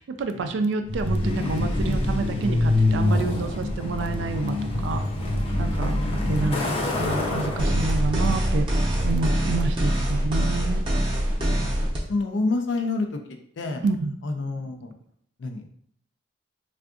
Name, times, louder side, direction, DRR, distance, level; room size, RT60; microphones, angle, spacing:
voice 1, 0.0-4.6 4.8-5.0 5.6-8.7 9.0-10.8 13.8-14.2, right 4 dB, 75° right, 8 dB, 0.3 m, -28 dB
Truck, 0.9-9.6, left 1 dB, 30° left, 0.5 m, -26 dB
voice 2, 4.7-5.1 5.9-6.4 10.2-10.4 11.4-13.8 14.2-14.9 15.4-15.7, left 3 dB, 85° left, 5 dB, 0.5 m, -30 dB
sound 1, 7.6-12.0, equal, 30° right, 0.7 m, -24 dB
3.5 x 2.4 x 2.4 m, 0.65 s
head